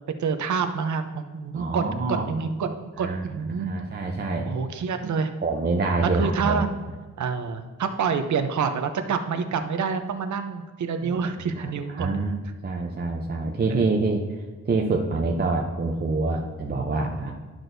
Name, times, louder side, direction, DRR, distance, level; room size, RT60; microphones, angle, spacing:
voice 1, 0.2-1.8 2.1-3.7 4.4-5.3 6.0-6.7 7.2-12.1 13.7-13.8, right 6 dB, 65° right, 7 dB, 0.7 m, -27 dB
voice 2, 1.5-2.2 3.0-3.2 3.5-4.5 5.4-6.6 11.0-11.2 11.6-11.7 11.9-12.3 12.6-14.2 14.6-17.3, right 3 dB, 30° right, 0 dB, 0.6 m, -26 dB
11.0 x 6.1 x 2.6 m, 1.4 s
wide cardioid pair, 145°, 31 cm